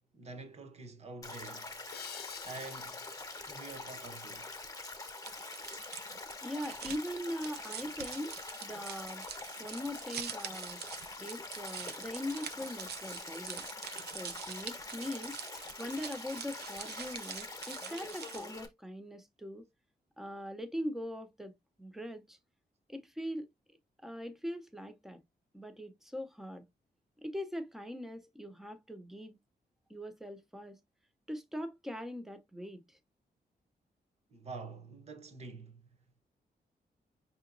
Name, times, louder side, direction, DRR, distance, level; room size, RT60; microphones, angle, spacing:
voice 1, 0.1-1.9 2.4-4.6 34.3-35.9, right 3 dB, 40° right, 1.0 m, -47 dB
Stream, 1.2-18.7, left 3 dB, 20° left, 1.0 m, -45 dB
sound 1, 1.9-5.3, left 9 dB, 75° left, 0.6 m, -51 dB
sound 2, 5.2-18.6, right 8 dB, 85° right, 0.5 m, -45 dB
voice 2, 6.4-8.3 8.6-9.2 9.6-10.8 11.2-13.7 14.1-15.4 15.8-19.7 20.2-21.5 21.8-22.4 22.9-23.5 24.0-25.2 25.5-26.7 27.2-29.4 29.9-30.8 31.3-33.0, left 1 dB, ahead, 0.7 m, -41 dB
5.5 x 2.9 x 2.5 m
wide cardioid pair, 150°, 16 cm